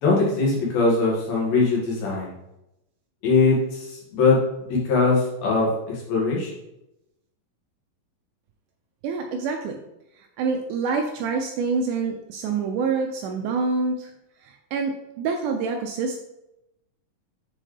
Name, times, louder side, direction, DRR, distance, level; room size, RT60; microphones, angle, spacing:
voice 1, 0.0-2.3 3.2-4.4 4.7-6.5, left 3 dB, 90° left, -4 dB, 3.7 m, -21 dB
voice 2, 9.0-9.8 10.2-14.1 14.4-16.2, right 4 dB, 80° right, 3 dB, 1.8 m, -26 dB
7.6 x 4.2 x 3.3 m, 0.87 s
omnidirectional pair, 4.1 m